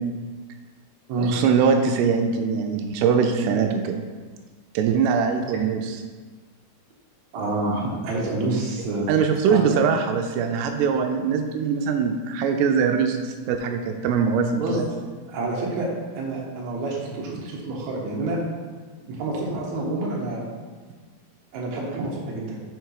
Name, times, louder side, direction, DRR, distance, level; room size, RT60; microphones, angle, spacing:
voice 1, 1.2-4.0 4.7-6.0 9.1-14.9, right 6 dB, 85° right, 5 dB, 2.6 m, -22 dB
voice 2, 7.3-9.1 9.5-9.7 14.6-14.8 15.3-15.9 16.1-18.4 19.0-20.4 21.5-22.6, right 2 dB, 60° right, -4 dB, 2.1 m, -28 dB
6.8 x 4.5 x 4.8 m, 1.4 s
omnidirectional pair, 4.7 m